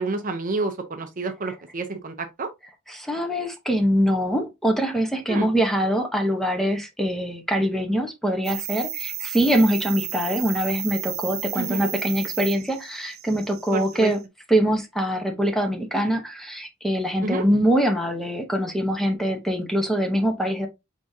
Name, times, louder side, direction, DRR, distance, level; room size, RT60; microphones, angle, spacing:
voice 1, 0.0-2.5 5.3-5.5 11.5-11.9 13.7-14.1 17.2-17.4, right 3 dB, 40° right, 0.6 m, -29 dB
voice 2, 2.9-14.2 14.5-20.7, equal, ahead, 0.9 m, -23 dB
sound 1, 8.4-14.2, right 11 dB, 80° right, 0.9 m, -33 dB
4.9 x 3.6 x 2.7 m
head